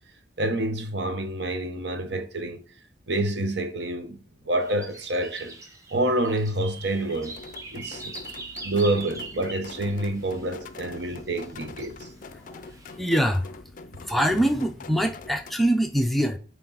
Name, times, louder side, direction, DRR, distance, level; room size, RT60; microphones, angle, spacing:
voice 1, 0.4-2.6 3.1-5.6 5.9-7.4 7.7-8.1 8.6-12.1, right 1 dB, 75° right, 1.0 m, -28 dB
sound 1, 4.6-10.5 11.4-12.1 12.6-12.9, right 2 dB, 20° right, 1.0 m, -42 dB
sound 2, 6.3-15.5, left 3 dB, 45° left, 0.4 m, -44 dB
voice 2, 12.3-13.5 14.0-16.4, equal, ahead, 0.6 m, -24 dB
8.8 x 3.4 x 4.0 m
head